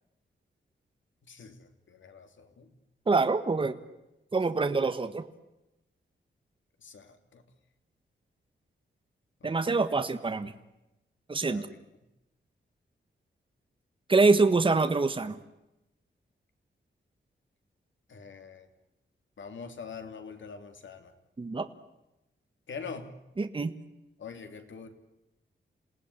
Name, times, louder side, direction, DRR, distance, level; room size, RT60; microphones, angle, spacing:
voice 1, 1.2-2.7 6.8-7.4 9.4-9.8 11.5-11.7 18.1-18.7 19.4-21.1 22.7-23.2 24.2-24.9, left 5 dB, 75° left, 7 dB, 3.2 m, -44 dB
voice 2, 3.1-3.8 4.3-5.2 9.4-10.5 11.3-11.7 14.1-15.4 21.4-21.7 23.4-23.7, right 3 dB, 25° right, 9 dB, 1.4 m, -25 dB
28.0 x 18.5 x 9.9 m, 0.97 s
wide cardioid pair, 150°, 20 cm